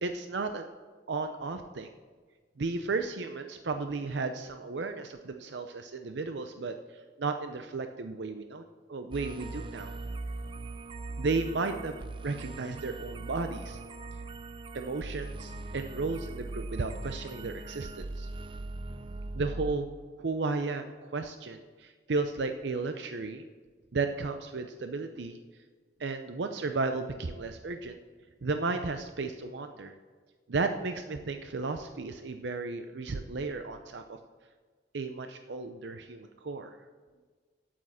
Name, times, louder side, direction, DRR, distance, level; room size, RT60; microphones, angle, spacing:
voice 1, 0.0-0.7 1.1-1.9 2.6-6.8 7.2-9.9 11.2-12.0 12.2-13.8 14.7-18.3 19.3-19.9 20.2-23.5 23.9-25.4 26.0-28.0 28.4-29.9 30.5-34.2 34.9-36.8, right 3 dB, 75° right, 7 dB, 0.6 m, -34 dB
sound 1, 9.1-19.7, right 2 dB, 25° right, 0.4 m, -40 dB
9.2 x 8.8 x 7.3 m, 1.4 s
head